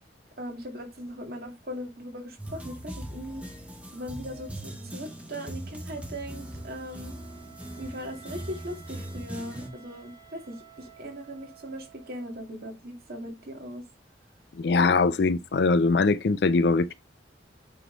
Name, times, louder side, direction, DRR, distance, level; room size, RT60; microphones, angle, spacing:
voice 1, 0.4-3.5 3.9-7.1 7.8-13.8, equal, 55° right, 2.3 m, -39 dB
sound 1, 2.4-9.7, right 1 dB, 5° right, 1.1 m, -40 dB
Wind instrument woodwind instrument, 4.6-12.6, right 8 dB, 25° right, 2.9 m, -54 dB
voice 2, 14.6-16.9, left 3 dB, 65° left, 0.4 m, -22 dB
8.8 x 3.7 x 4.0 m
head